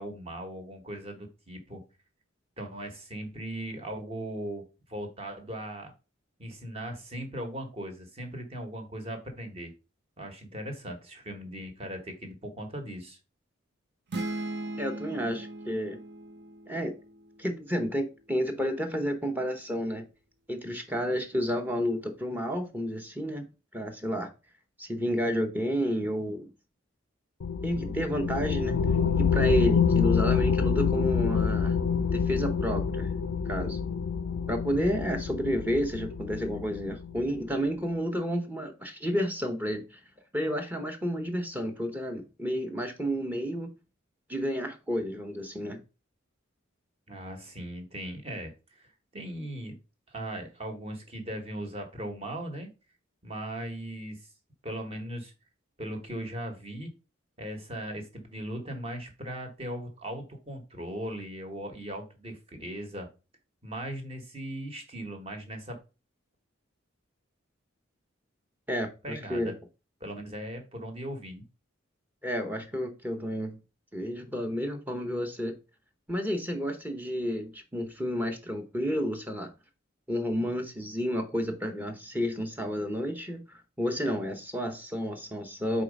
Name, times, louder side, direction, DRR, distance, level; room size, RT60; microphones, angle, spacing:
voice 1, 0.0-1.8 2.6-5.9 6.4-9.7 10.2-13.2 47.1-49.7 50.1-52.7 53.2-54.3 54.6-55.3 55.8-56.9 57.4-63.1 63.6-65.8 69.0-69.5 70.0-71.4, right 1 dB, 30° right, 1.3 m, -38 dB
sound 1, 14.1-17.8, right 2 dB, 55° right, 0.7 m, -38 dB
voice 2, 14.8-16.0 16.7-17.0 17.4-20.0 20.5-23.5 23.7-24.3 24.8-26.5 27.6-28.7 29.2-31.8 32.1-33.1 33.4-33.8 34.5-40.0 40.3-43.7 44.3-45.8 68.7-69.5 72.2-73.6 73.9-75.5 76.1-79.5 80.1-85.8, equal, 10° right, 0.8 m, -31 dB
sound 2, 27.4-37.4, left 6 dB, 80° left, 0.4 m, -27 dB
4.6 x 4.0 x 5.1 m
head